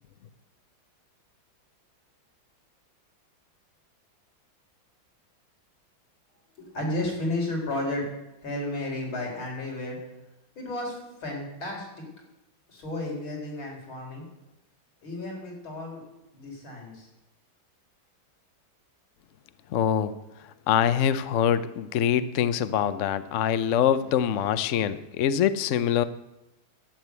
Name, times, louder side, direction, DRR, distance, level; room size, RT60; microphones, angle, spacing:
voice 1, 6.6-8.1 8.4-10.0 10.6-12.0 12.7-14.2 15.0-16.0 16.3-17.1, left 1 dB, 85° left, -1 dB, 4.7 m, -33 dB
voice 2, 19.7-20.1 20.7-26.0, left 9 dB, 70° left, 13 dB, 0.7 m, -24 dB
11.5 x 9.5 x 8.1 m, 0.95 s
omnidirectional pair, 2.2 m